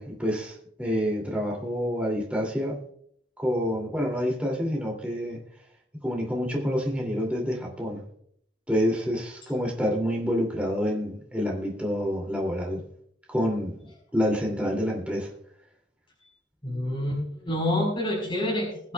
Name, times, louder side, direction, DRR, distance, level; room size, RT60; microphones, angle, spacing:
voice 1, 0.0-2.8 3.4-5.4 6.0-8.0 8.7-12.8 13.3-13.8 14.1-15.3, equal, 5° right, -1 dB, 2.5 m, -27 dB
voice 2, 16.6-18.9, left 1 dB, 25° left, -2 dB, 4.3 m, -28 dB
22.0 x 8.3 x 2.3 m, 0.66 s
head